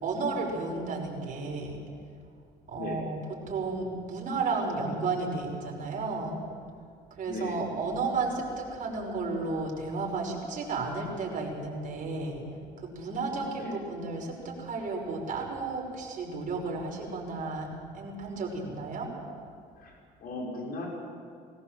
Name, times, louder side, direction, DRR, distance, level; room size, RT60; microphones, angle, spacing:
voice 1, 0.0-1.8 2.7-6.4 7.2-12.4 12.8-17.7 17.9-19.1, right 3 dB, 50° right, -1 dB, 5.7 m, -33 dB
voice 2, 7.3-7.7 13.6-13.7 19.8-19.9 20.2-20.9, left 2 dB, 65° left, -2 dB, 6.2 m, -37 dB
20.5 x 17.5 x 7.6 m, 2.2 s
cardioid pair, 110°, 17 cm